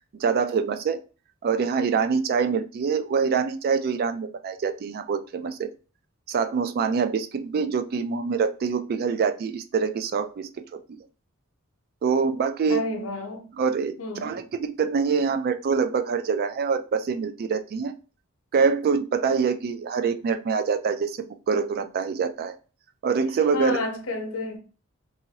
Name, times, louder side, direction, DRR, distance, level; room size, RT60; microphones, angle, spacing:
voice 1, 0.2-1.0 1.4-5.7 6.3-10.5 12.0-12.9 13.6-17.9 18.5-22.5 23.0-23.8, right 5 dB, 45° right, 0.3 m, -25 dB
voice 2, 12.7-13.5 14.0-14.4 23.5-24.6, left 2 dB, 70° left, 0.7 m, -31 dB
2.9 x 2.6 x 2.8 m
head